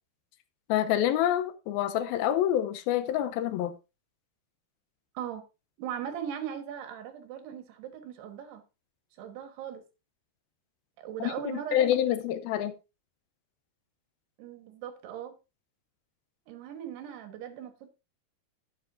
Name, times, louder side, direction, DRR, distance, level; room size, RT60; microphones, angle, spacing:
voice 1, 0.7-3.7 11.2-11.3 11.7-12.7, left 11 dB, 75° left, 2.5 m, -27 dB
voice 2, 5.8-8.6 9.2-9.8 11.0-12.2 14.4-15.3 16.5-17.9, right 9 dB, 90° right, 3.4 m, -39 dB
11.5 x 9.9 x 2.6 m
omnidirectional pair, 4.7 m